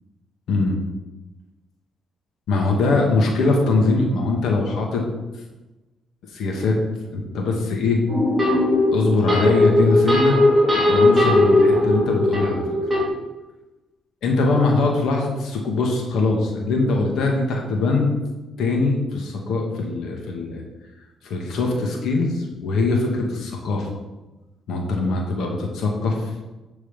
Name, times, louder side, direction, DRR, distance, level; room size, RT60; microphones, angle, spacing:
voice 1, 2.5-5.0 6.3-6.8 7.1-8.0 8.9-10.4 10.7-12.6 14.2-18.1 18.6-20.6 21.2-23.9 24.7-26.2, left 3 dB, 75° left, 0 dB, 2.1 m, -22 dB
sound 1, 8.1-13.1, left 1 dB, 5° right, 3.5 m, -18 dB
10.5 x 4.8 x 5.7 m, 1.1 s
cardioid pair, 90°, 0 cm